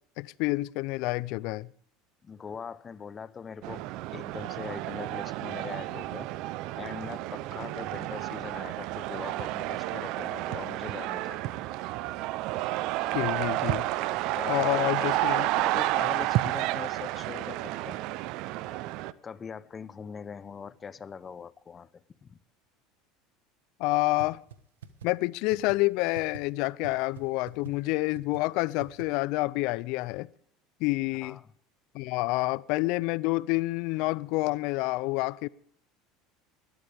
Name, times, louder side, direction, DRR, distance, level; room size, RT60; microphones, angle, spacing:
voice 1, 0.2-1.7 13.1-13.9 14.5-15.5 23.8-24.4 25.0-30.3 30.8-31.4 31.9-35.5, left 21 dB, 65° left, 0.6 m, -28 dB
voice 2, 2.2-3.8 4.1-6.3 6.8-11.5 14.4-18.0 19.2-22.4 31.2-31.4, left 6 dB, 30° left, 0.8 m, -41 dB
sound 1, 3.6-19.1, right 16 dB, 65° right, 0.7 m, -31 dB
sound 2, 24.2-24.3 24.5-24.6 24.8-25.1 25.5-25.7 26.1-26.4 26.8-26.9 27.2-27.3 27.5-27.7 28.1-28.4 28.8-29.0, right 9 dB, 90° right, 1.3 m, -42 dB
20.0 x 13.0 x 3.5 m
hypercardioid pair, 85°, 0 cm